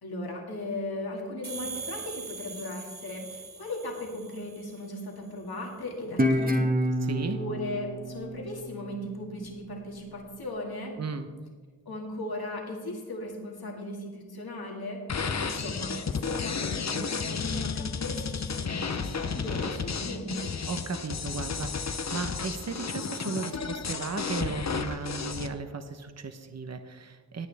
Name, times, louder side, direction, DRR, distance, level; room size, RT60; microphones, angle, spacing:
voice 1, 0.0-6.9 7.3-11.0 11.9-20.5, left 1 dB, 80° left, -1 dB, 2.3 m, -37 dB
sound 1, 1.4-5.0, right 5 dB, 60° right, 2.2 m, -42 dB
Guitar, 6.2-9.4, equal, 25° right, 1.3 m, -28 dB
voice 2, 7.0-7.4 11.0-11.3 20.7-27.5, right 4 dB, 45° right, 8 dB, 1.0 m, -35 dB
sound 2, 15.1-25.5, left 5 dB, 45° left, 0.8 m, -32 dB
18.5 x 9.2 x 3.5 m, 1.5 s
wide cardioid pair, 60°, 37 cm